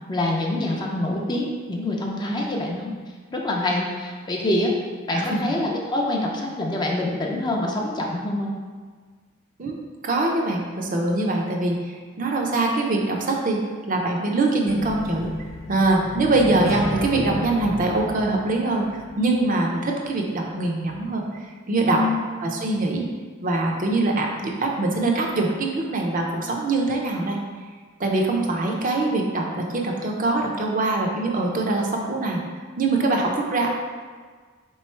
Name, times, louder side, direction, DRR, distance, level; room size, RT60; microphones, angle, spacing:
voice 1, 0.1-2.9 3.3-4.7 5.1-8.5 21.9-22.2, left 1 dB, 20° left, -1 dB, 0.5 m, -25 dB
voice 2, 10.0-13.6 13.9-15.3 15.7-22.0 22.4-23.1 23.4-27.4 28.0-32.4 32.8-33.7, right 2 dB, 40° right, 0 dB, 0.5 m, -23 dB
sound 1, 14.7-19.6, left 1 dB, 80° left, 0.5 m, -33 dB
3.8 x 3.1 x 4.4 m, 1.5 s
head